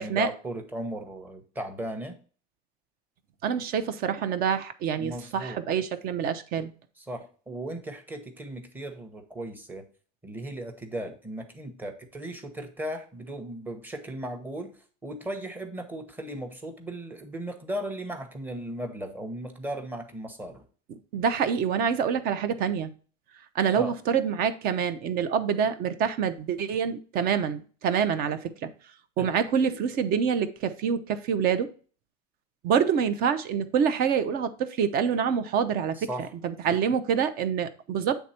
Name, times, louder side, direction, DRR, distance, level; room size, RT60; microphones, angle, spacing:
voice 1, 0.0-2.2 5.0-5.6 7.0-9.9 10.2-20.7 23.8-23.9 29.2-29.3 36.0-36.3 36.7-36.8, right 1 dB, 10° right, 5 dB, 0.9 m, -36 dB
voice 2, 3.4-6.7 21.1-22.9 23.5-28.7 29.2-31.7 32.6-36.1 36.4-38.2, right 7 dB, 45° right, 11 dB, 0.7 m, -26 dB
8.2 x 3.5 x 4.3 m, 0.39 s
cardioid pair, 155°, 21 cm